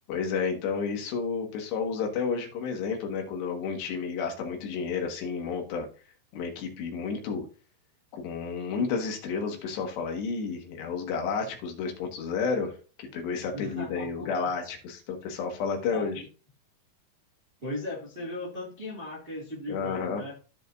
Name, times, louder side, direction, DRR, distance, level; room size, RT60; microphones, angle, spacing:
voice 1, 0.1-5.9 6.3-7.5 8.1-16.2 19.7-20.2, left 5 dB, 80° left, 3 dB, 3.8 m, -31 dB
voice 2, 13.5-14.3 15.9-16.1 17.6-20.3, left 2 dB, 35° right, -4 dB, 0.8 m, -37 dB
14.5 x 5.1 x 2.6 m, 0.35 s
omnidirectional pair, 4.9 m